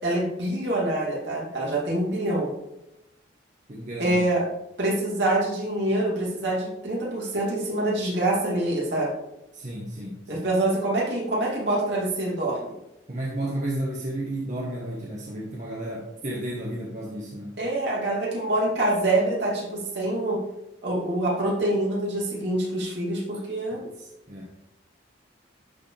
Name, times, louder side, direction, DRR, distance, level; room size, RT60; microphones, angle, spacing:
voice 1, 0.0-2.5 4.0-4.4 4.8-9.1 10.3-12.7 17.6-20.4 20.8-23.9, right 1 dB, 65° right, -4 dB, 2.6 m, -25 dB
voice 2, 3.7-4.2 9.5-10.5 13.1-17.5 24.0-24.5, right 1 dB, 40° right, -3 dB, 1.1 m, -32 dB
11.0 x 4.7 x 3.3 m, 0.89 s
head